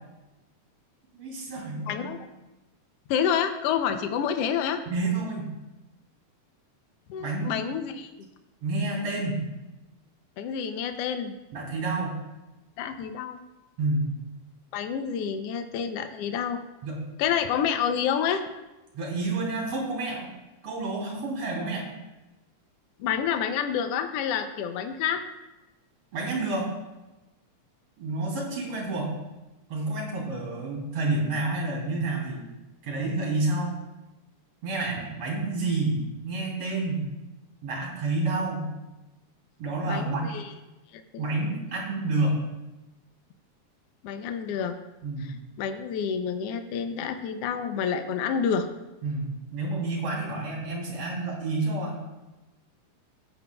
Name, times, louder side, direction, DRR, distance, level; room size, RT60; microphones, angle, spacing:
voice 1, 1.1-2.1 4.9-5.5 7.2-7.5 8.6-9.4 11.5-12.2 13.8-14.1 16.8-17.0 18.9-20.3 20.6-21.9 26.1-26.7 28.0-29.1 29.7-32.4 32.8-33.8 34.6-37.1 37.6-38.7 39.6-40.2 41.2-42.4 45.0-45.3 49.0-52.0, right 2 dB, 55° right, -2 dB, 4.0 m, -29 dB
voice 2, 1.9-2.2 3.1-4.8 7.1-8.1 10.4-11.3 12.8-13.4 14.7-16.6 17.2-18.4 23.0-25.2 39.9-40.5 40.9-41.2 44.0-44.7 45.6-48.7, left 8 dB, 85° left, 8 dB, 1.3 m, -28 dB
14.5 x 9.3 x 2.3 m, 1.0 s
omnidirectional pair, 3.6 m